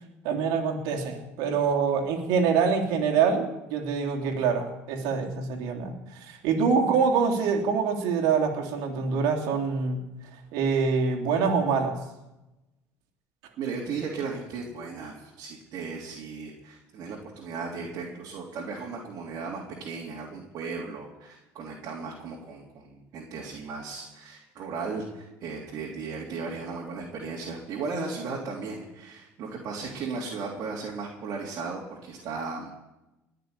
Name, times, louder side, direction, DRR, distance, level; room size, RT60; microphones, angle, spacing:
voice 1, 0.2-10.0 10.5-12.0, right 5 dB, 75° right, 2 dB, 3.2 m, -25 dB
voice 2, 13.6-32.7, right 4 dB, 55° right, -3 dB, 3.6 m, -36 dB
20.5 x 6.8 x 9.9 m, 0.98 s
supercardioid pair, 90°, 7 cm